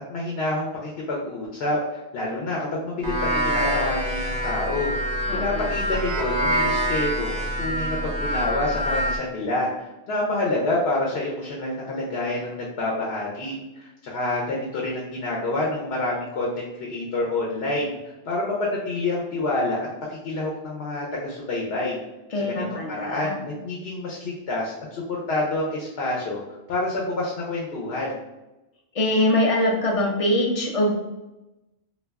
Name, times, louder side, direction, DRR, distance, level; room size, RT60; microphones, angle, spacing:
voice 1, 0.1-18.0 18.3-22.0 22.5-26.4 26.7-28.2, left 2 dB, 70° left, -3 dB, 0.8 m, -28 dB
sound 1, 3.0-9.2, equal, 35° right, 0.5 m, -25 dB
voice 2, 5.3-5.7 22.3-23.4 28.9-30.9, left 1 dB, 45° left, -1 dB, 0.5 m, -23 dB
2.3 x 2.2 x 3.3 m, 0.97 s
omnidirectional pair, 1.1 m